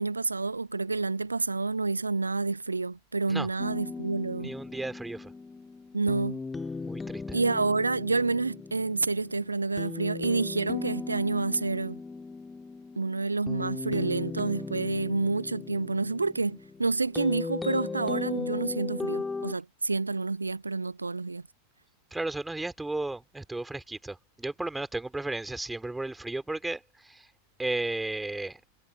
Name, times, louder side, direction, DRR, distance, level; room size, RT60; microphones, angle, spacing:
voice 1, 0.0-4.5 5.9-6.4 7.3-12.0 13.0-21.4, right 3 dB, 80° right, 1.0 m, -29 dB
sound 1, 3.6-19.5, left 4 dB, 10° left, 2.9 m, -37 dB
voice 2, 4.4-5.3 6.8-7.4 22.1-27.3 27.6-28.6, right 2 dB, 5° right, 3.0 m, -34 dB
figure-of-eight pair, 90°, 0 cm